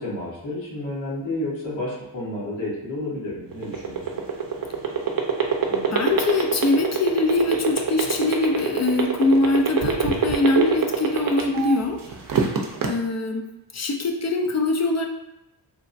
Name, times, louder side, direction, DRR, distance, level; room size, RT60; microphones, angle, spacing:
voice 1, 0.0-4.0, left 1 dB, 80° left, -7 dB, 1.4 m, -30 dB
sound 1, 3.5-11.7 12.1-12.9, right 7 dB, 50° right, 0.5 m, -22 dB
voice 2, 5.7-12.0 12.9-13.4 13.7-15.1, left 2 dB, 40° left, 3 dB, 0.4 m, -22 dB
3.2 x 2.1 x 2.5 m, 0.92 s
cardioid pair, 70°, 46 cm